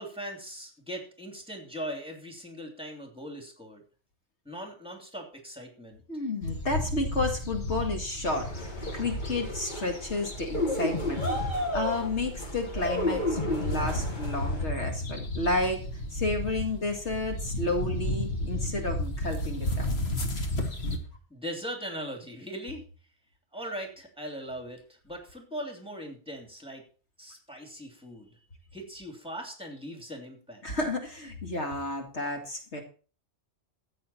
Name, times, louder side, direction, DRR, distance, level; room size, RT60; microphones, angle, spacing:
voice 1, 0.0-3.8 4.4-6.0 21.3-22.8 23.5-26.8 27.2-28.4 28.7-30.6, equal, 5° right, 2 dB, 2.9 m, -40 dB
voice 2, 6.1-11.2 11.7-20.0 30.6-32.8, left 2 dB, 80° left, 3 dB, 2.4 m, -31 dB
sound 1, 6.4-21.0, left 1 dB, 65° left, 1.8 m, -33 dB
sound 2, 8.3-14.6, left 1 dB, 45° left, 2.2 m, -32 dB
13.5 x 8.5 x 4.3 m, 0.38 s
omnidirectional pair, 1.2 m